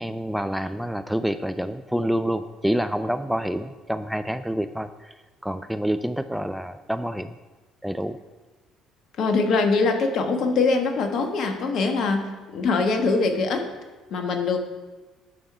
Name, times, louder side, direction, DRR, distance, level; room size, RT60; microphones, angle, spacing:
voice 1, 0.0-5.1 5.4-7.3 7.8-8.2, equal, 5° right, 10 dB, 0.4 m, -27 dB
voice 2, 9.2-12.3 12.5-13.7 14.1-14.6, left 4 dB, 50° left, 5 dB, 1.3 m, -22 dB
9.4 x 6.5 x 5.5 m, 1.2 s
figure-of-eight pair, 50°, 0 cm